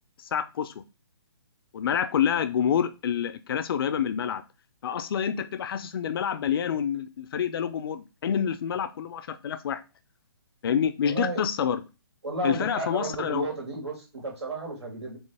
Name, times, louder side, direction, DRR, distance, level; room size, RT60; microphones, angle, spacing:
voice 1, 0.2-0.7 1.7-4.4 4.8-9.8 10.6-11.8 12.4-13.5, left 8 dB, 60° left, 0.4 m, -27 dB
voice 2, 11.0-11.4 12.2-15.2, right 2 dB, 85° right, 2.2 m, -33 dB
4.4 x 2.9 x 3.3 m
hypercardioid pair, 145°, 14 cm